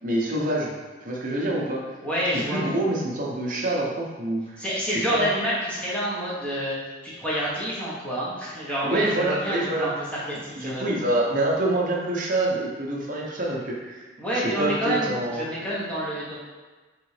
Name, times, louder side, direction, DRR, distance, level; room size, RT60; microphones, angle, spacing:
voice 1, 0.0-0.7 1.0-1.9 2.3-4.6 5.1-5.3 8.8-9.9 10.6-14.0 14.3-15.5, right 1 dB, 40° right, -3 dB, 0.7 m, -26 dB
voice 2, 2.0-2.7 4.6-6.8 7.0-10.8 14.2-16.3, equal, 5° left, -7 dB, 0.9 m, -28 dB
3.8 x 3.3 x 3.2 m, 1.3 s
head